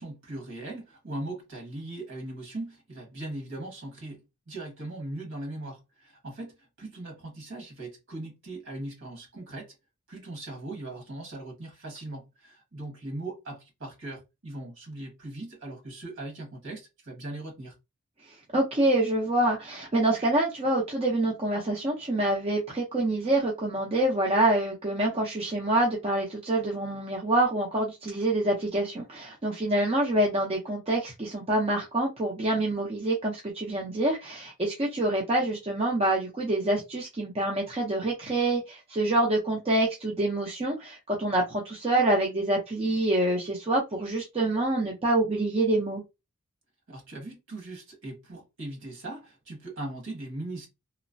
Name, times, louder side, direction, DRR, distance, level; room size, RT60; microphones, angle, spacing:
voice 1, 0.0-9.7 10.1-17.7 46.9-50.7, right 2 dB, 60° right, 1.6 m, -39 dB
voice 2, 18.5-46.0, right 1 dB, 25° right, 0.6 m, -26 dB
3.0 x 2.0 x 2.5 m
head